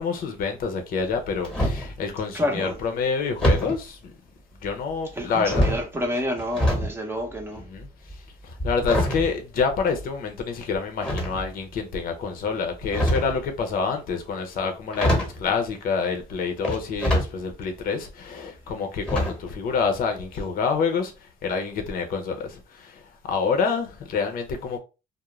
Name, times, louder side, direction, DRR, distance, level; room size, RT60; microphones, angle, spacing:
voice 1, 0.0-4.1 4.6-5.8 7.5-7.9 8.4-21.1 21.4-24.8, left 5 dB, 60° left, 0.6 m, -27 dB
sound 1, 1.1-1.9 3.4-3.8 4.6-5.1 5.4-6.9 7.2-10.2 11.0-11.7 12.7-13.4 14.6-14.7 14.9-15.4 16.6-17.3 17.8-17.9 19.1-19.6 19.8-20.0 20.3-20.4, equal, 5° left, 1.0 m, -25 dB
voice 2, 2.3-2.8 5.1-7.7, left 1 dB, 15° right, 0.7 m, -28 dB
2.4 x 2.1 x 3.0 m
cardioid pair, 110°, 17 cm